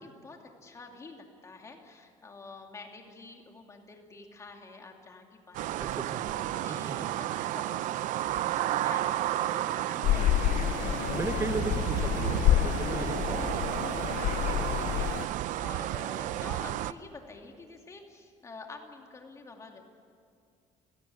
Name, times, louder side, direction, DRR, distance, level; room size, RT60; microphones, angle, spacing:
voice 1, 0.0-11.5 12.3-13.0 13.7-19.8, left 3 dB, 25° left, 2 dB, 2.5 m, -49 dB
sound 1, 5.5-16.9, right 13 dB, 80° right, 0.6 m, -32 dB
voice 2, 5.8-6.3 6.7-7.0 11.1-13.5, right 3 dB, 20° right, 7 dB, 1.4 m, -36 dB
sound 2, 10.0-15.3, left 13 dB, 75° left, 0.6 m, -28 dB
29.5 x 17.5 x 8.6 m, 2.3 s
cardioid pair, 170°, 13 cm